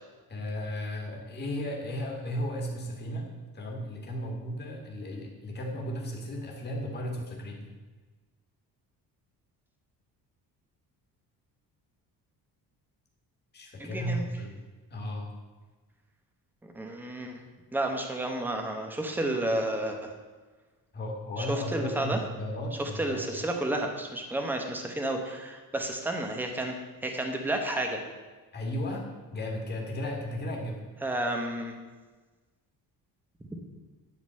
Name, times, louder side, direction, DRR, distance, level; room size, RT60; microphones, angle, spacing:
voice 1, 0.3-7.7 13.5-14.6 14.9-15.3 20.9-23.3 28.5-29.0 29.3-30.8, equal, 30° left, 0 dB, 1.8 m, -35 dB
voice 2, 13.8-14.2 16.6-17.4 17.7-20.1 21.4-22.2 22.8-26.7 27.0-28.0 31.0-31.7, right 1 dB, 5° right, 3 dB, 0.9 m, -31 dB
11.0 x 4.0 x 7.5 m, 1.3 s
cardioid pair, 170°, 36 cm